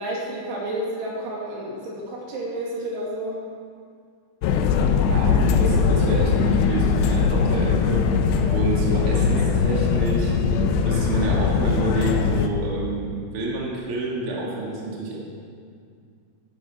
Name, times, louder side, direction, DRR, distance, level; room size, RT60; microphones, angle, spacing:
voice 1, 0.0-3.4, right 1 dB, 70° right, -3 dB, 4.4 m, -30 dB
sound 1, 4.4-12.5, left 5 dB, 75° left, 2.8 m, -20 dB
voice 2, 5.1-8.1 8.5-10.3 10.8-15.2, right 2 dB, 35° right, -5 dB, 3.0 m, -28 dB
14.5 x 11.0 x 7.4 m, 2.3 s
omnidirectional pair, 5.2 m